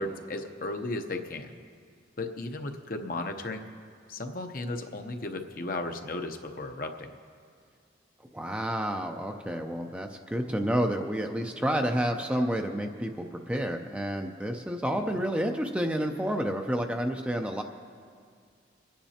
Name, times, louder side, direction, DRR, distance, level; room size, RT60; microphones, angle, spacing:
voice 1, 0.0-1.5 2.2-3.7 4.1-7.1 15.0-15.2, left 2 dB, 45° left, 5 dB, 0.7 m, -35 dB
voice 2, 8.3-17.6, equal, 5° right, 3 dB, 0.5 m, -30 dB
27.5 x 10.0 x 2.8 m, 2.1 s
head